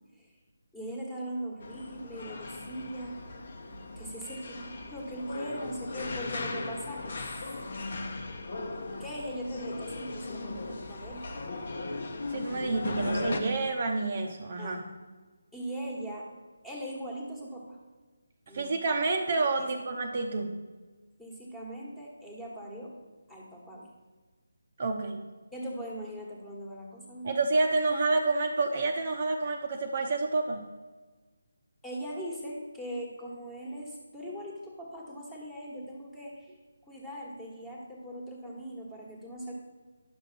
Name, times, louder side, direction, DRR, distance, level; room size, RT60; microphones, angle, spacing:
voice 1, 0.7-3.2 4.0-7.3 9.0-11.3 14.6-15.0 15.5-16.3 16.6-17.8 18.5-18.8 19.6-19.9 21.2-22.9 23.3-23.9 25.5-27.4 31.8-36.5 36.9-39.5, equal, 5° left, -3 dB, 1.4 m, -40 dB
sound 1, 1.6-13.4, left 2 dB, 50° left, 1.0 m, -38 dB
voice 2, 12.3-14.8 18.5-20.6 24.8-25.2 27.2-30.6, right 3 dB, 40° right, 4 dB, 0.8 m, -29 dB
10.5 x 6.6 x 4.2 m, 1.3 s
figure-of-eight pair, 155°, 0 cm